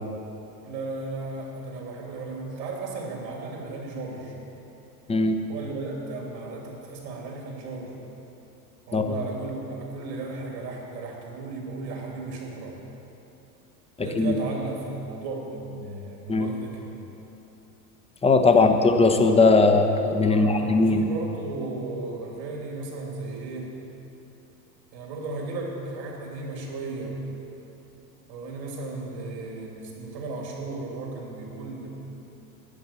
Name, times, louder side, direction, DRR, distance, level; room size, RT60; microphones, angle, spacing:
voice 1, 0.6-4.4 5.5-7.9 8.9-12.8 14.0-16.9 18.6-18.9 20.2-23.8 24.9-27.2 28.3-31.9, right 3 dB, 80° right, 0 dB, 3.1 m, -35 dB
voice 2, 14.0-14.3 16.3-16.5 18.2-21.1, left 3 dB, 10° left, 6 dB, 0.9 m, -19 dB
12.0 x 9.4 x 7.4 m, 3.0 s
hypercardioid pair, 100°, 49 cm